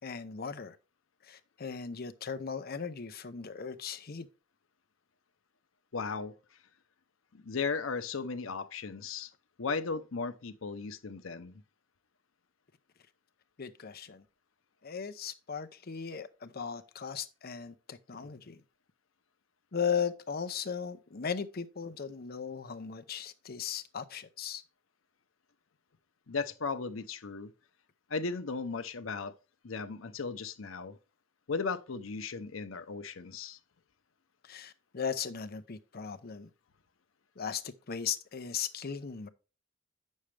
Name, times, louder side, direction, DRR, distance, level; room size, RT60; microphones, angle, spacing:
voice 1, 0.0-0.8 1.2-4.3 13.6-14.2 14.8-18.6 19.7-24.6 34.4-36.5 37.4-39.3, left 7 dB, 50° left, 0.7 m, -37 dB
voice 2, 5.9-6.3 7.3-9.3 9.6-11.5 26.3-27.5 28.1-29.3 29.6-31.0 31.5-33.6, left 4 dB, 90° left, 0.7 m, -36 dB
8.6 x 6.4 x 3.3 m
head